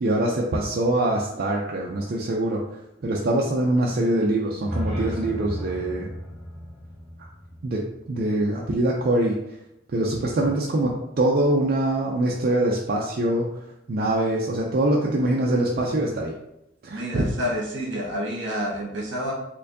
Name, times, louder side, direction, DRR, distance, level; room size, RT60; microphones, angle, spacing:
voice 1, 0.0-6.1 7.6-9.4 9.9-13.5 13.9-16.3 16.8-17.3, right 1 dB, 50° right, -2 dB, 0.4 m, -24 dB
sound 1, 4.5-8.5, equal, 5° left, 0.9 m, -34 dB
voice 2, 16.9-19.3, equal, 75° right, -2 dB, 1.1 m, -29 dB
4.3 x 2.6 x 2.6 m, 0.84 s
head